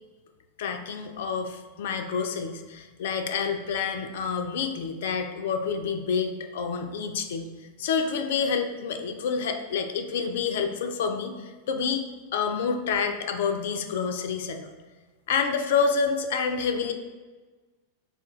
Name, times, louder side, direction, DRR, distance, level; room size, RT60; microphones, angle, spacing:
voice 1, 0.6-7.5 7.8-12.0 12.3-14.7 15.3-16.9, left 6 dB, 55° left, 7 dB, 0.3 m, -28 dB
4.1 x 2.3 x 3.0 m, 1.3 s
figure-of-eight pair, 90°, 0 cm